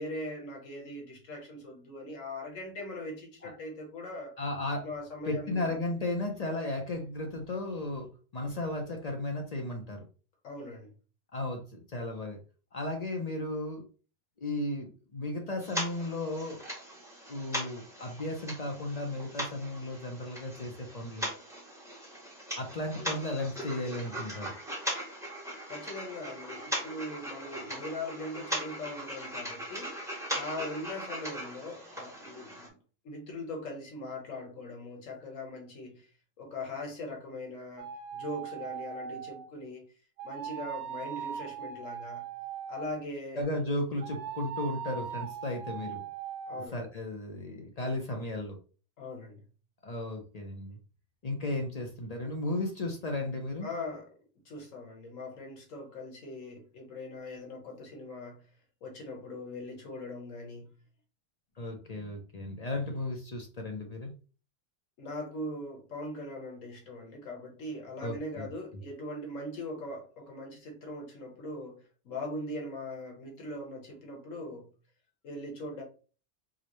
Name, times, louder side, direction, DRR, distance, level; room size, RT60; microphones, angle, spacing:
voice 1, 0.0-4.3 4.8-5.8 10.4-10.9 23.0-23.2 25.7-30.0 30.3-32.8 33.0-36.1 36.4-39.8 40.2-42.3 42.7-43.4 44.9-45.1 46.5-46.9 49.0-49.5 53.6-54.1 54.4-58.5 58.8-60.8 65.0-74.7 75.2-75.8, left 1 dB, 80° left, 1.5 m, -41 dB
voice 2, 4.4-4.9 5.3-10.0 11.3-12.4 12.7-13.8 14.4-16.6 17.3-21.3 22.5-24.5 43.4-46.0 46.7-48.6 49.8-50.8 51.2-53.7 61.6-64.1 68.0-68.5, left 2 dB, 50° left, 0.5 m, -35 dB
sound 1, 15.6-32.7, equal, 5° right, 0.8 m, -39 dB
sound 2, 37.8-39.5 40.2-43.1 44.0-46.7, right 7 dB, 70° right, 0.9 m, -40 dB
4.8 x 2.1 x 2.9 m
omnidirectional pair, 1.3 m